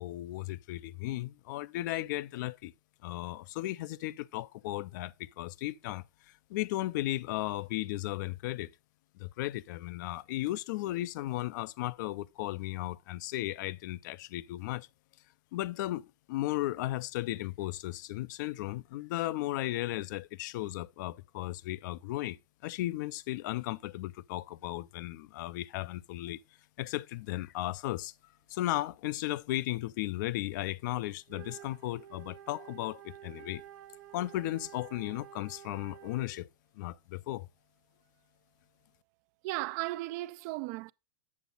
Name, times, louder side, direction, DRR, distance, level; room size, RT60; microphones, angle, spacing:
voice 1, 0.0-2.7 3.0-6.0 6.5-8.7 9.2-14.9 15.5-26.4 26.8-28.1 28.5-33.6 34.1-36.5 36.8-37.5, left 16 dB, 60° left, 0.5 m, -35 dB
Wind instrument woodwind instrument, 31.2-36.5, right 11 dB, 70° right, 1.3 m, -51 dB
voice 2, 39.4-40.9, right 19 dB, 50° right, 0.4 m, -35 dB
8.4 x 6.9 x 3.9 m
supercardioid pair, 135°, 11 cm